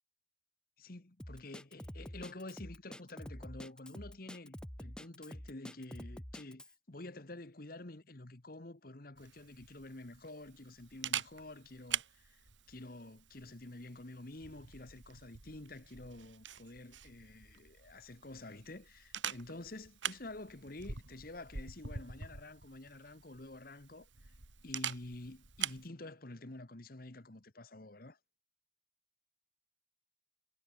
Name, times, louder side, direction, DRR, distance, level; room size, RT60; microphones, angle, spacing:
voice 1, 0.8-12.4 12.7-24.3 24.6-28.2, left 2 dB, 50° left, 1.4 m, -49 dB
Drum kit, 1.2-6.7, equal, 5° left, 0.6 m, -47 dB
Camera, 9.2-25.9, right 8 dB, 80° right, 2.9 m, -45 dB
head